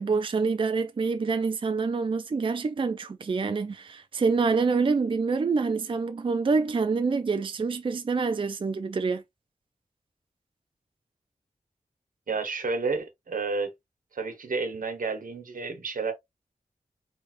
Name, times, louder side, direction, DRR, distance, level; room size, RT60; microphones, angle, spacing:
voice 1, 0.0-9.2, right 4 dB, 40° right, 0.4 m, -26 dB
voice 2, 12.3-13.7 14.1-16.1, right 4 dB, 85° right, 1.2 m, -30 dB
4.4 x 3.4 x 2.6 m
wide cardioid pair, 100°, 14 cm